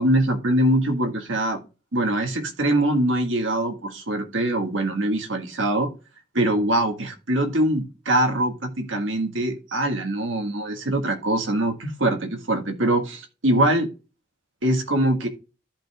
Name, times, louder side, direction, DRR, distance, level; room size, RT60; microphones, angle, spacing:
voice 1, 0.0-1.6 1.9-5.9 6.3-13.9 14.6-15.3, right 1 dB, 85° right, 1.7 m, -23 dB
14.0 x 5.2 x 2.4 m
head